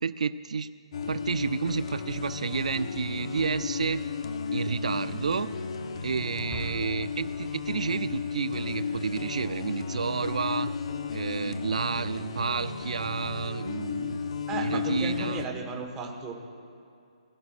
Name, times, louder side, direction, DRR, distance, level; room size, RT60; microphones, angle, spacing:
voice 1, 0.0-0.7 1.1-4.0 4.5-5.5 6.0-10.7 11.1-15.4, right 5 dB, 85° right, 14 dB, 0.4 m, -30 dB
sound 1, 0.9-15.5, left 6 dB, 55° left, 0.9 m, -34 dB
Explosion, 6.5-8.3, equal, 10° left, 1.3 m, -45 dB
voice 2, 14.5-16.3, right 4 dB, 15° right, 2 dB, 1.3 m, -35 dB
21.0 x 12.0 x 2.5 m, 2.5 s
hypercardioid pair, 155°, 4 cm